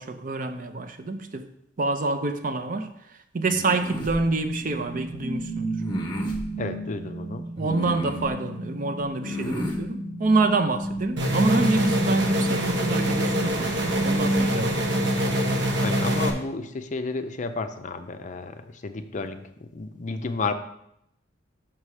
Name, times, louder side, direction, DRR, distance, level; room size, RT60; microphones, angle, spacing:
voice 1, 0.0-1.5 1.8-2.9 3.3-5.8 7.6-15.0, right 3 dB, 45° right, 9 dB, 0.6 m, -27 dB
sound 1, 3.5-4.2 5.8-6.4 7.6-8.3 9.2-9.8, equal, 25° left, 1.0 m, -32 dB
sound 2, 3.9-15.9, right 1 dB, 20° right, 1.1 m, -33 dB
voice 2, 6.6-7.5 15.8-20.5, left 3 dB, 40° left, 8 dB, 0.5 m, -32 dB
sound 3, 11.2-16.3, equal, 65° right, 1.0 m, -24 dB
6.0 x 5.5 x 4.8 m, 0.77 s
head